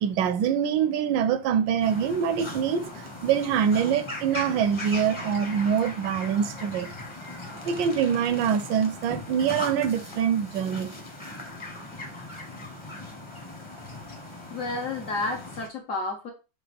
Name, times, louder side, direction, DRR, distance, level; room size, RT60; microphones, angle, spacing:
voice 1, 0.0-6.9 7.6-10.9, right 8 dB, 80° right, 1.2 m, -25 dB
sound 1, 1.8-15.7, left 2 dB, 25° left, 0.7 m, -39 dB
voice 2, 14.5-16.3, left 3 dB, 60° left, 0.9 m, -31 dB
6.6 x 2.4 x 3.3 m
omnidirectional pair, 2.1 m